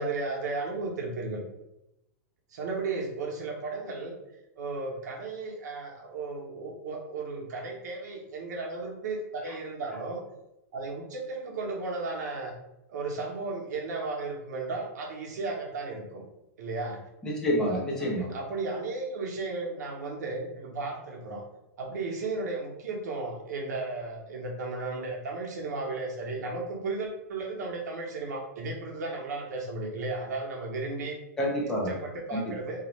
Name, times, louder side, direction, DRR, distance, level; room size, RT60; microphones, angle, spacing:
voice 1, 0.0-1.4 2.5-4.2 4.6-10.2 10.7-12.5 12.9-16.2 16.6-17.0 18.2-21.4 21.8-31.2 31.9-32.8, right 3 dB, 80° right, 0 dB, 0.7 m, -34 dB
voice 2, 17.2-18.3 31.4-32.0 32.3-32.6, equal, 5° left, -4 dB, 0.4 m, -28 dB
2.4 x 2.1 x 3.0 m, 0.89 s
supercardioid pair, 175°, 9 cm